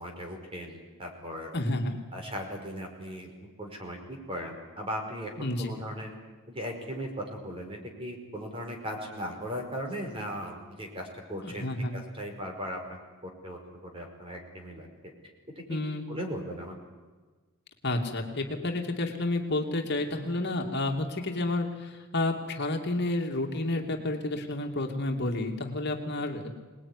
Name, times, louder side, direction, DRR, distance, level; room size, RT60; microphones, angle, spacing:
voice 1, 0.0-1.5 2.1-3.3 3.6-6.1 6.5-12.8 13.2-14.9 15.6-15.7 16.1-16.7, equal, 25° right, 2 dB, 5.2 m, -38 dB
voice 2, 1.5-1.9 5.4-5.7 11.4-11.9 15.7-16.1 17.8-26.5, left 2 dB, 50° left, 3 dB, 2.6 m, -30 dB
26.5 x 20.0 x 9.9 m, 1.3 s
head